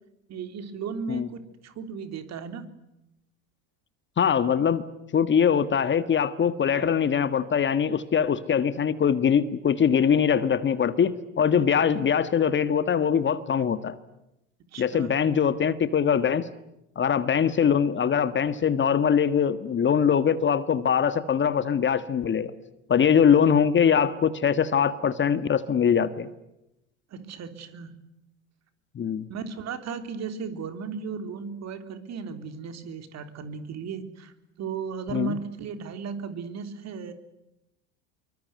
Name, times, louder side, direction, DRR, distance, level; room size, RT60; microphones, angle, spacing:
voice 1, 0.3-2.7 6.7-7.0 14.7-15.2 27.1-28.1 29.3-34.3 34.6-37.1, right 6 dB, 45° right, 10 dB, 3.5 m, -36 dB
voice 2, 4.2-4.8 5.1-14.0 14.8-16.5 16.9-22.5 22.9-26.3 28.9-29.2 35.1-35.4, left 7 dB, 30° left, 14 dB, 1.5 m, -22 dB
24.5 x 24.0 x 9.5 m, 0.88 s
hypercardioid pair, 80°, 38 cm